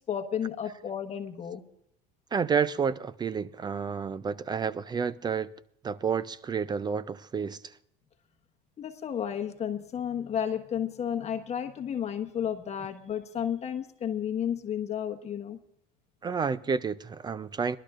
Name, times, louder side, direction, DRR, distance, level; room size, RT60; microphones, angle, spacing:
voice 1, 0.0-1.6 8.8-15.6, left 9 dB, 30° left, 1.3 m, -32 dB
voice 2, 2.3-5.5 5.8-7.8 16.2-17.8, right 6 dB, 20° right, 0.4 m, -30 dB
22.0 x 12.0 x 2.5 m
supercardioid pair, 120°, 21 cm